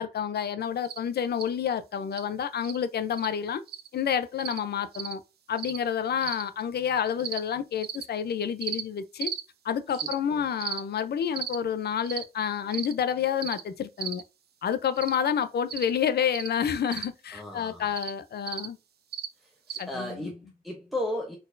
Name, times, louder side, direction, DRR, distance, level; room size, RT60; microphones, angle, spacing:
voice 1, 0.0-3.6 3.9-5.2 5.5-9.3 9.6-14.2 14.6-18.8 19.8-20.3, left 8 dB, 90° left, 0.6 m, -29 dB
sound 1, 0.8-1.0 1.4-1.5 2.1-2.2 2.6-2.8 3.1-3.3 3.7-3.9 4.4-4.6 4.9-5.1 5.6-5.8 6.2-6.4 7.2-7.4 7.8-8.0 8.6-8.8 9.2-9.4 9.9-10.1 10.6-10.8 11.3-11.6 12.1-12.2 12.7-12.9 13.4-13.6 14.0-14.2 15.0-15.2 15.7-15.9 16.3-16.5 16.9-17.1 17.9-18.1 18.5-18.7 19.1-19.3 19.7-19.8, right 8 dB, 80° right, 0.7 m, -35 dB
voice 2, 9.9-10.5 17.3-17.9 19.4-21.4, left 1 dB, ahead, 0.9 m, -36 dB
4.4 x 4.1 x 2.6 m
wide cardioid pair, 170°, 16 cm